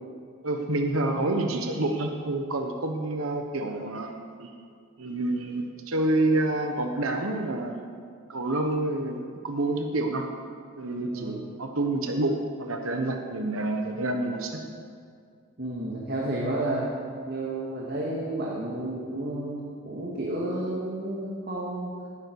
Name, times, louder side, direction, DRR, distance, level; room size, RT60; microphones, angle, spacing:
voice 1, 0.4-4.5 5.0-7.7 8.3-10.2 10.8-12.3 12.6-14.6, right 2 dB, 80° right, 4 dB, 1.1 m, -28 dB
voice 2, 15.6-16.9 17.3-21.9, right 1 dB, 50° right, -4 dB, 2.0 m, -31 dB
18.0 x 12.0 x 4.7 m, 2.2 s
head